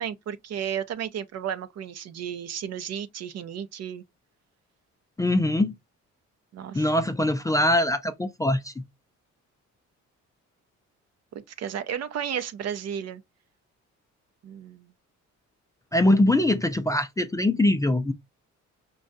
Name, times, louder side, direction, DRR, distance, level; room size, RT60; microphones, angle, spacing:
voice 1, 0.0-4.0 6.5-6.9 11.3-13.2 14.4-14.9, right 9 dB, 55° right, 0.6 m, -33 dB
voice 2, 5.2-5.7 6.7-8.7 15.9-18.1, left 1 dB, 10° left, 0.4 m, -22 dB
5.3 x 2.3 x 2.5 m
cardioid pair, 90°, 30 cm